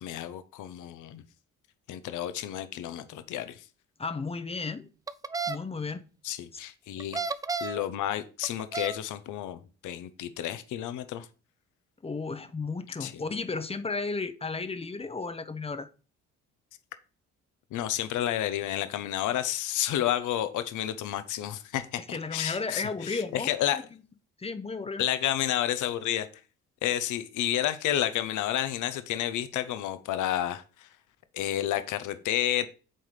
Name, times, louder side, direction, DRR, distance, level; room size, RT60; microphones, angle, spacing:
voice 1, 0.0-1.2 1.9-3.6 6.2-7.2 7.6-11.3 13.0-13.1 17.7-23.8 25.0-26.3 26.8-30.9 31.3-32.7, left 12 dB, 80° left, 0.7 m, -30 dB
voice 2, 4.0-4.9 5.5-6.1 12.0-15.9 22.1-23.8 24.4-25.0, left 4 dB, 20° left, 0.7 m, -34 dB
sound 1, 5.1-5.6 7.0-7.8 8.4-9.0, right 4 dB, 15° right, 0.3 m, -32 dB
7.7 x 3.9 x 3.2 m
cardioid pair, 90°, 30 cm